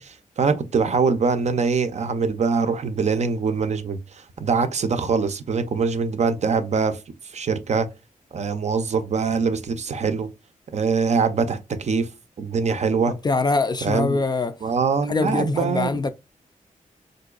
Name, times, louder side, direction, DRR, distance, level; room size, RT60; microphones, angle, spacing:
voice 1, 0.0-7.0 7.2-7.9 8.3-10.3 10.7-12.1 12.4-13.2 13.8-14.2 14.6-16.0, right 5 dB, 55° right, 0.5 m, -23 dB
voice 2, 13.1-14.5 15.1-16.1, left 3 dB, 30° left, 0.3 m, -23 dB
3.7 x 2.6 x 2.3 m
wide cardioid pair, 90°, 14 cm